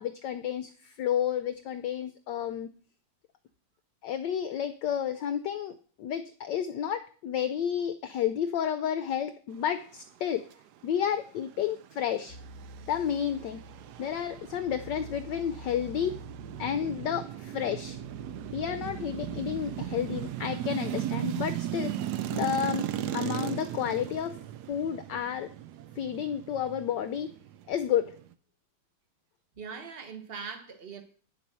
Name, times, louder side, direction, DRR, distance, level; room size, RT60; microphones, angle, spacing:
voice 1, 0.0-2.7 4.0-10.5 10.8-12.4 12.9-13.6 14.0-16.2 16.6-18.0 18.5-22.9 23.1-24.4 24.7-25.5 26.0-27.3 27.7-28.1, left 9 dB, 70° left, 1.1 m, -31 dB
sound 1, 11.6-28.3, right 12 dB, 80° right, 0.9 m, -37 dB
sound 2, 12.3-20.3, equal, 50° left, 1.6 m, -48 dB
voice 2, 29.6-31.0, right 5 dB, 30° right, 1.3 m, -41 dB
9.7 x 7.5 x 5.5 m
omnidirectional pair, 2.4 m